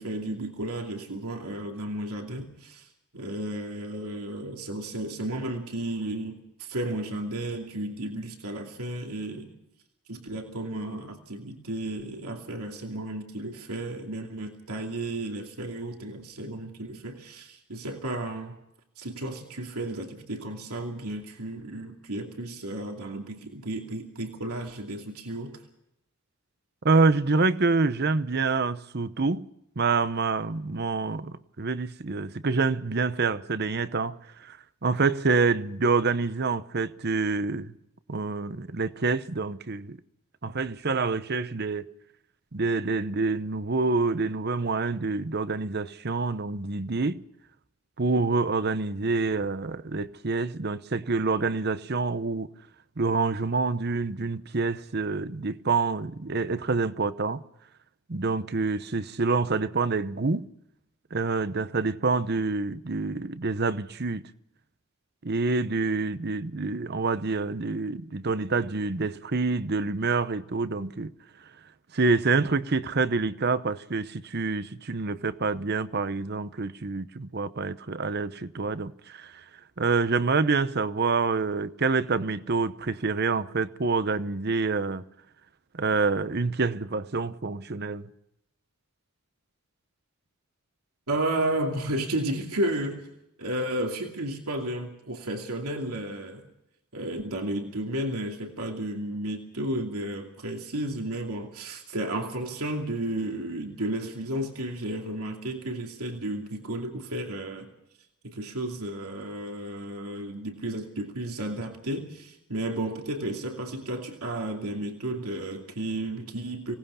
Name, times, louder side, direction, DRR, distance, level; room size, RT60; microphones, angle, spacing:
voice 1, 0.0-9.5 10.1-18.6 19.0-25.6 91.1-93.1 93.4-96.5 96.9-107.7 108.2-116.7, right 1 dB, 85° right, 2.7 m, -33 dB
voice 2, 26.8-29.4 29.8-37.7 38.1-40.0 40.4-41.9 42.5-47.2 48.0-52.5 53.0-57.4 58.1-60.5 61.1-64.2 65.2-71.1 71.9-79.4 79.8-85.0 85.7-88.1, right 4 dB, 45° right, 0.8 m, -27 dB
25.5 x 18.5 x 5.7 m
head